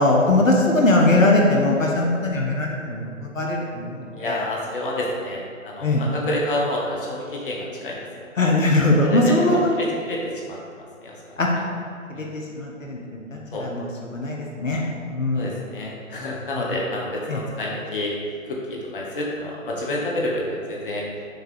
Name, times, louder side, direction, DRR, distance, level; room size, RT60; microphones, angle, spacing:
voice 1, 0.0-4.4 5.8-6.0 8.4-9.7 11.4-11.5 12.1-14.8 15.1-15.5 16.6-16.7 17.3-17.4, left 2 dB, 70° left, -1 dB, 1.0 m, -21 dB
voice 2, 4.1-8.2 9.0-11.1 12.1-12.3 13.5-13.7 15.3-18.1 18.4-21.1, left 1 dB, 40° left, -3 dB, 1.1 m, -29 dB
6.5 x 3.4 x 4.8 m, 2.1 s
figure-of-eight pair, 140°, 41 cm